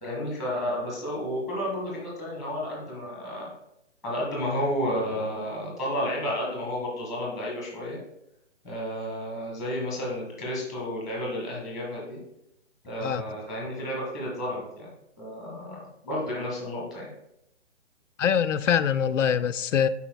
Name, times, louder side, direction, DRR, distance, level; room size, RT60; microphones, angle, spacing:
voice 1, 0.0-3.5 4.0-8.0 8.6-12.2 12.8-14.9 15.2-17.1, equal, ahead, 1.1 m, -31 dB
voice 2, 18.2-19.9, left 8 dB, 80° left, 0.5 m, -23 dB
11.5 x 4.3 x 2.2 m
hypercardioid pair, 160°, 37 cm